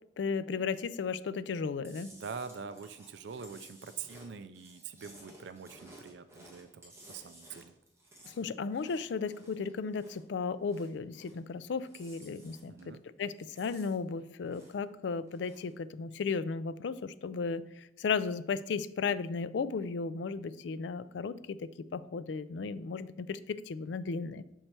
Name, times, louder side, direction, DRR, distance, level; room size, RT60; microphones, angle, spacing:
voice 1, 0.2-2.1 8.3-12.7 13.2-21.6 21.9-24.4, left 5 dB, 75° left, 15 dB, 0.4 m, -35 dB
Chewing mastication, 1.8-10.3 10.6-11.5 11.8-12.9 13.2-14.9 15.2-15.7, right 1 dB, 15° right, 1.4 m, -56 dB
voice 2, 2.1-7.7 12.7-13.0, right 6 dB, 70° right, 12 dB, 0.4 m, -44 dB
6.5 x 4.5 x 4.4 m, 0.83 s
head